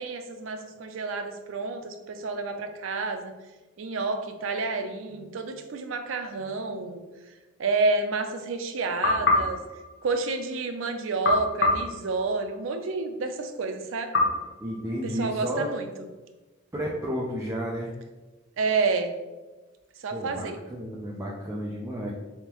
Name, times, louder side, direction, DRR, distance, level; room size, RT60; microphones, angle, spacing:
voice 1, 0.0-3.3 3.8-7.0 7.6-9.6 10.0-14.1 15.2-16.1 18.6-19.1 20.0-20.6, right 3 dB, 80° right, 6 dB, 0.5 m, -29 dB
sound 1, 9.0-10.6 11.2-12.8 14.1-15.5, left 2 dB, 65° left, 0.8 m, -27 dB
voice 2, 14.6-15.7 16.7-17.9 20.1-22.1, equal, 15° right, -4 dB, 0.4 m, -32 dB
3.5 x 3.5 x 2.9 m, 1.2 s
head